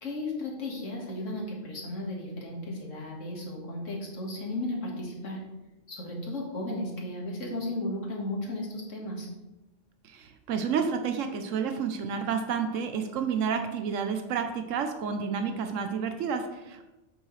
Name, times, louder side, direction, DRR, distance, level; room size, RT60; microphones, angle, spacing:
voice 1, 0.0-5.4 5.9-9.3, left 1 dB, 75° left, -2 dB, 2.1 m, -35 dB
voice 2, 10.0-16.9, right 6 dB, 90° right, 6 dB, 1.1 m, -30 dB
8.8 x 6.3 x 3.2 m, 1.0 s
omnidirectional pair, 1.3 m